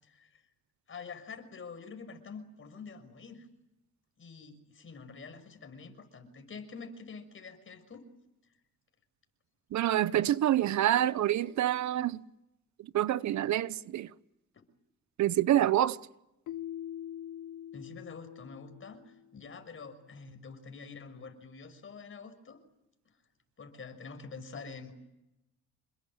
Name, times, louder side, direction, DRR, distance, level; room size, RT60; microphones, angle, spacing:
voice 1, 0.0-0.4 0.9-3.5 4.2-8.0 14.5-14.6 17.7-22.6 23.6-24.9, left 5 dB, 45° left, 6.2 m, -47 dB
voice 2, 9.7-12.2 12.9-14.1 15.2-16.0, right 12 dB, 70° right, 0.9 m, -27 dB
Keyboard (musical), 16.5-19.3, left 11 dB, 85° left, 0.9 m, -43 dB
28.0 x 22.0 x 8.9 m
cardioid pair, 90°, 30 cm